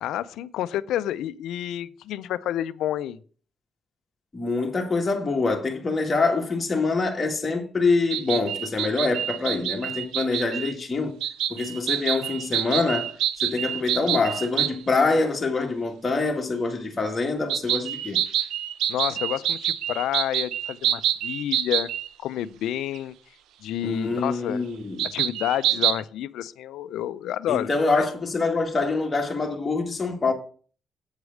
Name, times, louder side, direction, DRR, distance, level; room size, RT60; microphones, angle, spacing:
voice 1, 0.0-3.2 18.9-21.9 22.2-23.1 23.6-24.6 25.1-28.1, left 12 dB, 85° left, 0.5 m, -29 dB
voice 2, 4.3-11.1 11.5-18.2 23.8-25.1 27.5-30.3, left 3 dB, 30° left, 1.9 m, -25 dB
sound 1, 8.1-10.7 11.2-14.7 17.5-22.1 22.9-23.0 25.0-26.0, right 11 dB, 85° right, 0.6 m, -27 dB
8.1 x 4.8 x 6.4 m
cardioid pair, 90°, 0 cm